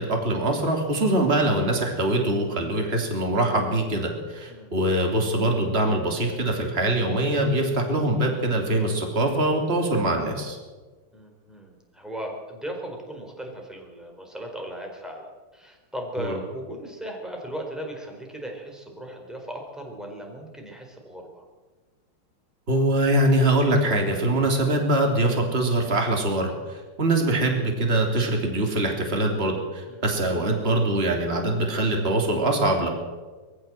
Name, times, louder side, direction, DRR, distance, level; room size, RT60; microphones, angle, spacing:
voice 1, 0.0-10.6 16.2-16.4 22.7-32.9, right 1 dB, 25° right, 2 dB, 3.3 m, -23 dB
voice 2, 11.1-21.4 29.9-30.1, right 1 dB, ahead, 1 dB, 4.4 m, -37 dB
23.0 x 15.0 x 7.7 m, 1.3 s
omnidirectional pair, 2.4 m